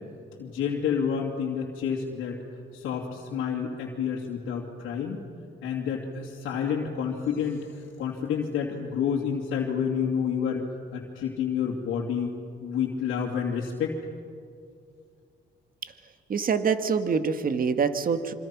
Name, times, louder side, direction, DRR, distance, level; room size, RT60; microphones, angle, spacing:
voice 1, 0.4-2.4 2.7-5.2 5.6-10.6 10.9-12.3 12.6-14.0, left 7 dB, 90° left, -3 dB, 2.8 m, -29 dB
voice 2, 16.3-18.3, right 6 dB, 45° right, 9 dB, 1.7 m, -25 dB
26.5 x 26.0 x 6.1 m, 2.3 s
cardioid pair, 90°, 20 cm